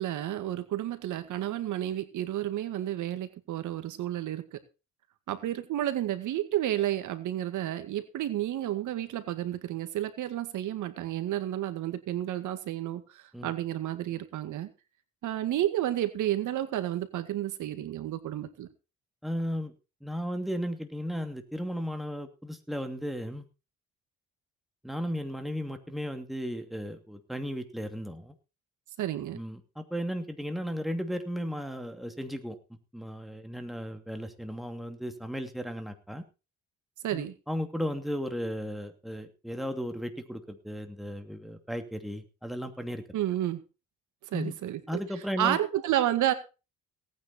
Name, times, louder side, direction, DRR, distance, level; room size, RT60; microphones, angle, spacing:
voice 1, 0.0-4.6 5.3-14.7 15.2-18.7 29.0-29.4 37.0-37.3 43.1-43.6 44.3-44.8 45.4-46.3, right 12 dB, 80° right, 10 dB, 2.0 m, -31 dB
voice 2, 19.2-19.7 20.0-23.5 24.8-28.3 29.3-32.6 32.9-36.2 37.1-43.0 44.3-44.5 44.9-45.6, equal, ahead, 6 dB, 2.6 m, -35 dB
18.0 x 9.4 x 4.4 m, 0.31 s
cardioid pair, 90°, 30 cm